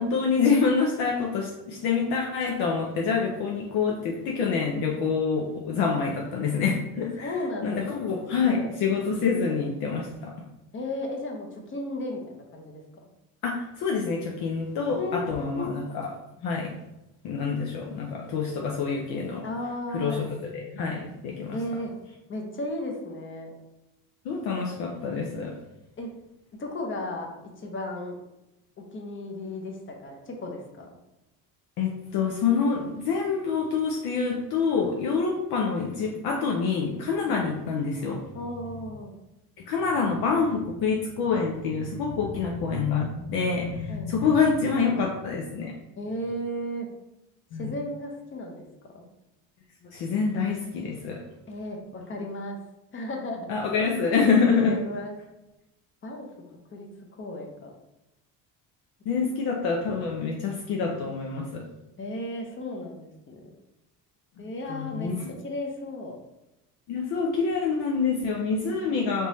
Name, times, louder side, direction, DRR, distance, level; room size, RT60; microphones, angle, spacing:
voice 1, 0.0-7.3 7.6-10.3 13.4-16.1 16.4-16.7 17.2-19.5 19.9-20.2 20.5-21.6 24.2-25.5 31.8-38.2 39.7-45.8 47.5-47.7 49.9-51.2 53.5-54.8 59.1-61.6 64.4-65.3 66.9-69.3, left 5 dB, 65° left, 0 dB, 0.6 m, -26 dB
voice 2, 7.2-8.7 10.7-12.8 14.9-15.2 15.5-15.8 19.4-20.3 21.5-21.9 22.3-23.5 26.0-26.1 26.6-27.3 27.6-28.1 28.8-30.9 37.3-37.4 38.3-39.1 43.9-44.1 46.0-46.9 47.6-48.6 48.9-49.1 51.5-52.6 52.9-53.6 54.7-55.1 56.0-56.3 56.7-56.9 57.2-57.7 62.0-63.5 64.4-65.1 65.4-66.2, left 1 dB, 30° left, 2 dB, 0.7 m, -34 dB
3.5 x 2.8 x 3.0 m, 0.95 s
cardioid pair, 105°, 40 cm